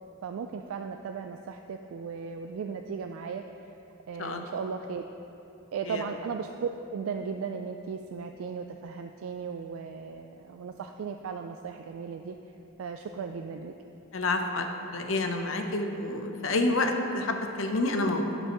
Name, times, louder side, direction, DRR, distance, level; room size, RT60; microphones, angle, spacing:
voice 1, 0.2-3.4 4.1-5.0 5.7-12.4 12.8-13.7, right 6 dB, 80° right, 5 dB, 0.3 m, -36 dB
voice 2, 14.1-14.7 14.9-18.3, left 2 dB, 70° left, 4 dB, 0.7 m, -28 dB
14.5 x 5.4 x 3.0 m, 2.9 s
head